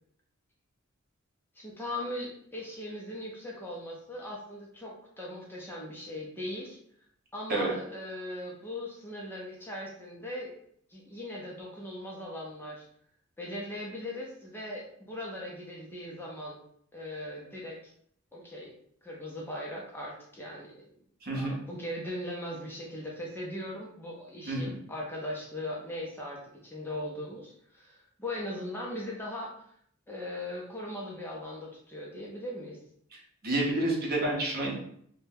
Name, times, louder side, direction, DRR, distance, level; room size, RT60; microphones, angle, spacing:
voice 1, 1.6-6.8 7.3-10.5 10.9-12.8 13.4-16.6 16.9-17.9 18.3-18.7 19.0-20.8 21.3-29.5 30.1-32.8, left 1 dB, 10° left, -3 dB, 0.5 m, -39 dB
voice 2, 21.2-21.6 24.5-24.7 33.1-34.7, right 2 dB, 45° right, -1 dB, 0.8 m, -29 dB
2.6 x 2.1 x 3.3 m, 0.66 s
head